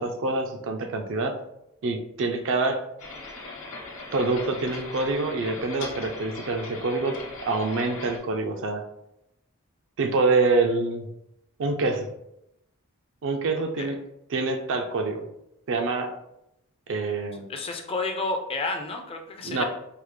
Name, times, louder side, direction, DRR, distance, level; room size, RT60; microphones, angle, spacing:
voice 1, 0.0-1.4 1.8-2.8 4.1-7.2 7.4-8.8 10.0-11.1 11.6-12.1 13.2-14.0 14.3-15.3 15.7-16.1 16.9-17.5 19.4-19.6, right 3 dB, 60° right, 4 dB, 0.4 m, -26 dB
sound 1, 3.0-8.2, left 3 dB, 65° left, 0.9 m, -39 dB
voice 2, 17.5-19.6, left 3 dB, 25° left, 4 dB, 0.4 m, -30 dB
4.6 x 2.1 x 3.2 m, 0.83 s
head